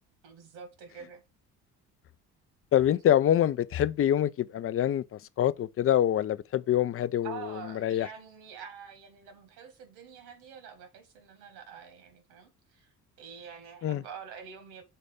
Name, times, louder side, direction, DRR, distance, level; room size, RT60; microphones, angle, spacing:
voice 1, 0.2-1.2 7.2-14.8, right 7 dB, 70° right, 2.1 m, -46 dB
voice 2, 2.7-8.1 13.8-14.0, left 11 dB, 30° left, 0.5 m, -26 dB
6.6 x 4.1 x 5.1 m
hypercardioid pair, 55°, 46 cm